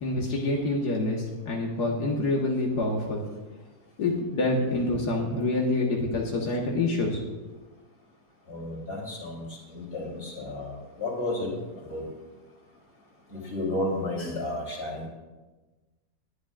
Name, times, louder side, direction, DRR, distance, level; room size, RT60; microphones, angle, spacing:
voice 1, 0.0-3.2 4.0-7.4, left 2 dB, 85° left, -2 dB, 2.1 m, -27 dB
voice 2, 8.5-9.4 9.7-11.5 11.9-12.0 13.3-15.1, left 1 dB, 40° left, -2 dB, 3.7 m, -32 dB
20.0 x 11.0 x 2.5 m, 1.2 s
omnidirectional pair, 1.7 m